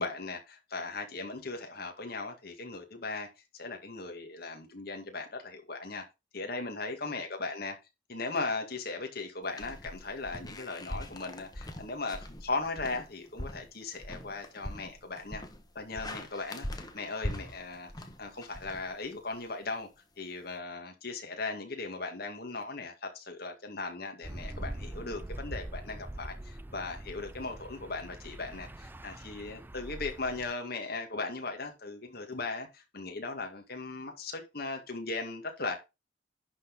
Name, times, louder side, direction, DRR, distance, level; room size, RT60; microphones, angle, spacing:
voice 1, 0.0-3.3 3.5-6.0 6.3-7.8 8.1-15.4 15.8-19.9 20.2-35.8, left 3 dB, 55° left, 2.0 m, -38 dB
sound 1, 9.5-19.4, left 1 dB, 20° left, 1.2 m, -42 dB
sound 2, 24.2-30.5, right 1 dB, 10° right, 0.4 m, -43 dB
11.0 x 4.1 x 5.3 m
head